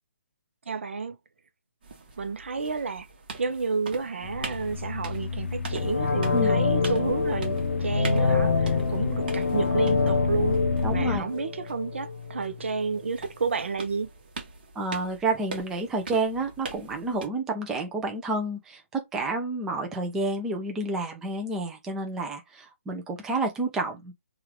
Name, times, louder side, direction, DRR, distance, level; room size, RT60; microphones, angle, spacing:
voice 1, 0.7-1.2 2.2-3.1 3.4-10.6 10.9-14.1, right 4 dB, 60° right, 0.7 m, -30 dB
sound 1, 1.8-17.3, right 4 dB, 45° right, 1.1 m, -43 dB
sound 2, 4.2-11.2, left 4 dB, 75° left, 0.5 m, -31 dB
sound 3, 5.7-12.5 12.8-12.9, left 4 dB, 55° left, 0.9 m, -26 dB
voice 2, 10.8-11.3 14.8-24.1, right 2 dB, 5° right, 0.4 m, -30 dB
3.2 x 2.4 x 3.0 m
hypercardioid pair, 170°, 7 cm